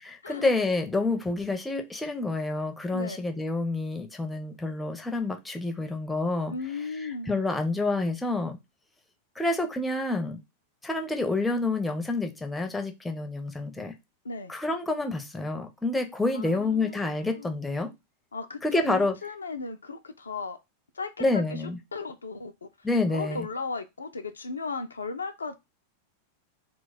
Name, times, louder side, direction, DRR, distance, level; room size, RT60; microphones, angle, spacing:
voice 1, 0.0-6.5 7.0-8.6 9.4-10.4 10.8-13.9 14.5-17.9 18.6-19.2 21.2-21.8 22.8-23.5, left 2 dB, 5° left, 0.5 m, -28 dB
voice 2, 6.5-7.3 14.2-14.5 16.3-17.6 18.3-18.6 18.9-20.6 20.9-21.6 21.9-25.6, left 3 dB, 75° left, 0.3 m, -36 dB
2.3 x 2.2 x 3.8 m
figure-of-eight pair, 90°, 0 cm